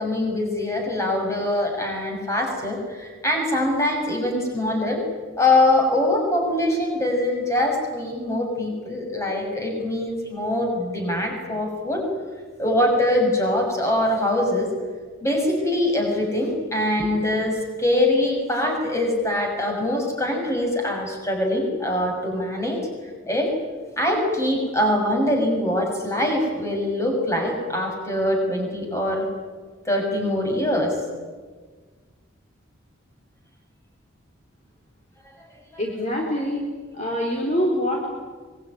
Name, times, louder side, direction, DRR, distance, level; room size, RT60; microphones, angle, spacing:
voice 1, 0.0-5.0 5.4-12.0 12.6-14.7 15.2-22.8 23.3-23.5 24.0-29.2 29.8-31.0, left 1 dB, 15° left, 1 dB, 6.8 m, -23 dB
voice 2, 35.8-36.7 36.9-38.1, equal, 35° left, -1 dB, 4.0 m, -24 dB
25.0 x 22.5 x 9.9 m, 1.4 s
head